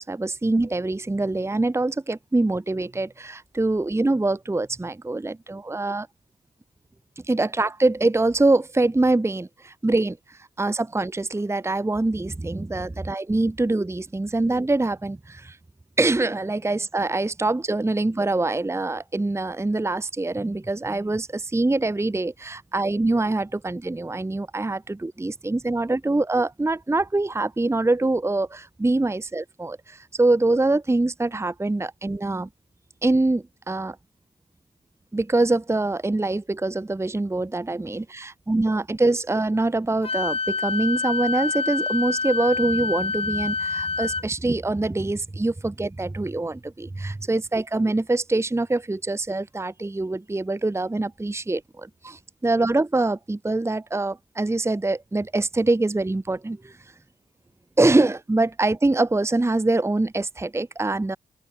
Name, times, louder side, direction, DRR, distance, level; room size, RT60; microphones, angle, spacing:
voice 1, 0.0-6.1 7.3-15.6 16.0-32.5 33.0-34.0 35.1-56.8 57.8-61.2, right 2 dB, 15° right, 0.9 m, -24 dB
Wind instrument woodwind instrument, 40.0-44.2, left 4 dB, 30° left, 0.9 m, -27 dB
open air
hypercardioid pair, 40°, 19 cm